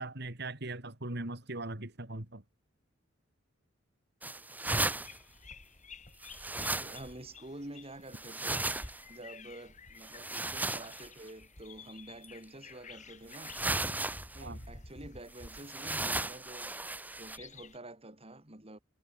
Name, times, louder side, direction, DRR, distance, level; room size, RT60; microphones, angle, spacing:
voice 1, 0.0-2.4 14.4-14.6, right 2 dB, 60° right, 3.0 m, -40 dB
sound 1, 4.2-5.2 6.2-7.2 8.1-9.0 10.0-11.1 12.2-12.3 13.3-14.4 15.4-17.4, right 2 dB, 10° right, 2.0 m, -35 dB
sound 2, 4.7-17.8, left 4 dB, 40° left, 5.1 m, -53 dB
voice 2, 6.8-8.7 9.1-13.7 14.3-16.7 17.2-18.8, right 1 dB, 30° right, 3.7 m, -48 dB
head